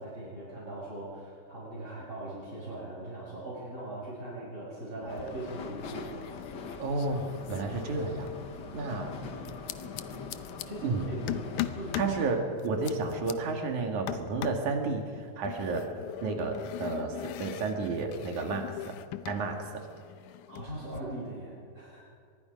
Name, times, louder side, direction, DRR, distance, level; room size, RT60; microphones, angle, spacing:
voice 1, 0.0-6.1 8.7-8.9 10.6-12.2 12.6-12.8 20.5-22.0, right 1 dB, 25° right, -11 dB, 7.8 m, -40 dB
sound 1, 5.0-5.6 5.8-8.4 9.4-10.7 11.3-12.2 12.6-13.3 14.1-14.7 15.4-19.4 19.7-21.0, left 14 dB, 80° left, 2.2 m, -40 dB
sound 2, 5.1-12.3, left 4 dB, 50° left, 1.3 m, -42 dB
voice 2, 6.8-8.3 8.7-9.1 10.8-11.1 12.0-15.9 16.2-18.7 19.3-19.8, right 3 dB, 70° right, 3 dB, 3.4 m, -31 dB
24.5 x 22.0 x 5.3 m, 2.2 s
omnidirectional pair, 3.6 m